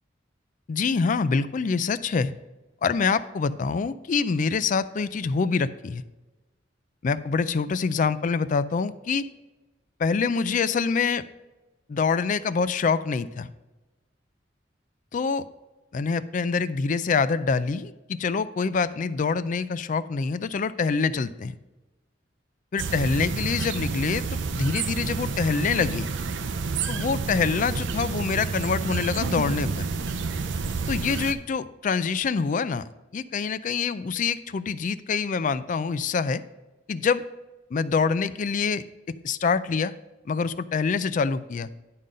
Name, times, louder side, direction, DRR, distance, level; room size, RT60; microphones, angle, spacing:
voice 1, 0.7-2.3 2.8-6.0 7.0-9.3 10.0-11.2 11.9-13.5 15.1-15.5 15.9-21.5 22.7-26.1 26.9-29.9 30.9-32.8 33.1-36.4 36.9-37.2 37.7-39.9 40.3-41.7, left 5 dB, 45° left, 15 dB, 0.4 m, -25 dB
sound 1, 22.8-31.3, right 4 dB, 75° right, 0.5 m, -29 dB
11.0 x 3.8 x 5.3 m, 1.1 s
head